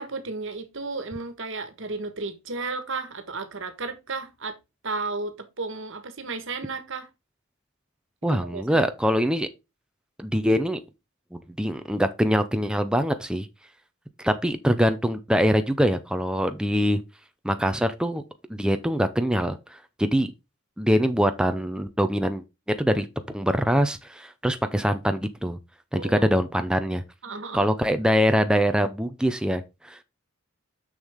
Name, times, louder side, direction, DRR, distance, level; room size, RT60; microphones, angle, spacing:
voice 1, 0.0-4.6 4.8-7.1 8.3-8.8 25.9-26.3 27.2-27.7, right 3 dB, 70° right, 1.5 m, -33 dB
voice 2, 8.2-9.5 10.2-10.8 11.3-13.5 14.2-17.0 17.4-18.2 18.5-20.3 20.8-22.4 22.8-23.1 23.3-25.6 25.9-27.0 27.5-30.0, equal, 5° right, 0.6 m, -23 dB
6.8 x 6.5 x 3.5 m
head